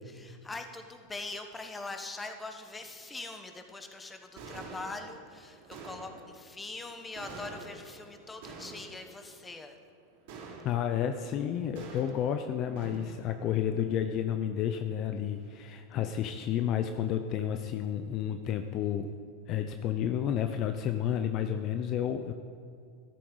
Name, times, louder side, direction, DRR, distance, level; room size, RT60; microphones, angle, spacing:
voice 1, 0.1-9.7, left 3 dB, 15° left, 6 dB, 1.2 m, -42 dB
sound 1, 2.2-2.3 2.7-3.1 4.1-4.2 4.4-15.7, right 3 dB, 65° right, 3.2 m, -49 dB
voice 2, 10.6-19.1 19.5-22.3, left 9 dB, 45° left, 8 dB, 0.6 m, -31 dB
13.0 x 11.5 x 4.0 m, 2.4 s
hypercardioid pair, 105°, 0 cm